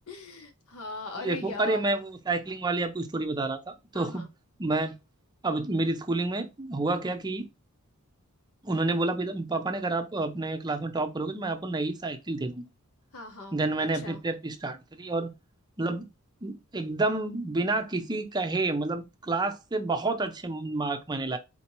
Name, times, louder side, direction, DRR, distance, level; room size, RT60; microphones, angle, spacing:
voice 1, 0.1-2.0 3.9-4.3 13.1-14.2, left 3 dB, 75° left, 1.1 m, -40 dB
voice 2, 1.2-4.2 4.6-5.0 5.4-7.5 8.6-12.6 13.5-15.3 15.8-16.1 16.4-21.4, right 2 dB, 20° right, 0.6 m, -29 dB
4.3 x 2.9 x 2.9 m
head